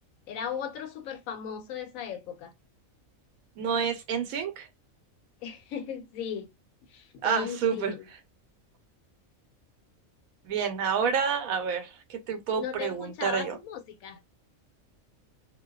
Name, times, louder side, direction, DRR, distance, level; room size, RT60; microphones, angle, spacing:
voice 1, 0.3-2.5 5.4-6.5 6.9-8.1 12.6-14.2, left 8 dB, 80° left, 1.0 m, -37 dB
voice 2, 3.6-4.7 7.2-7.9 10.4-13.5, right 7 dB, 85° right, 1.1 m, -29 dB
2.6 x 2.1 x 2.2 m
omnidirectional pair, 1.4 m